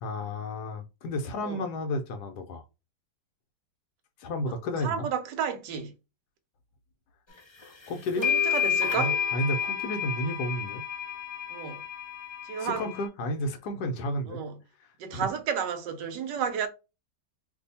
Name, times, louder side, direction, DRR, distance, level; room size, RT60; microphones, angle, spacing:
voice 1, 0.0-2.6 4.2-5.1 7.6-8.4 9.0-10.8 12.6-14.4 14.8-15.3, left 1 dB, 70° left, 1.1 m, -32 dB
voice 2, 4.8-5.9 8.2-9.1 11.5-11.8 12.4-12.9 14.3-14.6 15.0-16.7, right 7 dB, 75° right, 1.2 m, -32 dB
sound 1, 7.6-7.7 8.2-13.1, left 8 dB, 35° left, 0.4 m, -30 dB
2.7 x 2.7 x 4.0 m
omnidirectional pair, 1.9 m